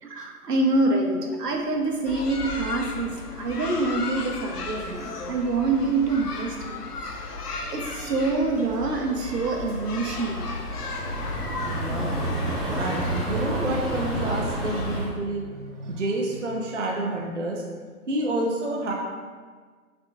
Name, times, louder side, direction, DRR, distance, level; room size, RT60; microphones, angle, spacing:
voice 1, 0.0-6.8 7.2-10.4, right 3 dB, 85° right, 2 dB, 0.9 m, -26 dB
sound 1, 1.7-3.8 4.1-15.1, right 1 dB, ahead, 0.5 m, -33 dB
sound 2, 2.1-15.0, left 3 dB, 75° left, 0.7 m, -35 dB
voice 2, 11.6-12.2 12.8-17.6 18.1-18.9, right 1 dB, 50° right, -1 dB, 0.5 m, -29 dB
5.9 x 3.5 x 2.3 m, 1.5 s
hypercardioid pair, 180°, 46 cm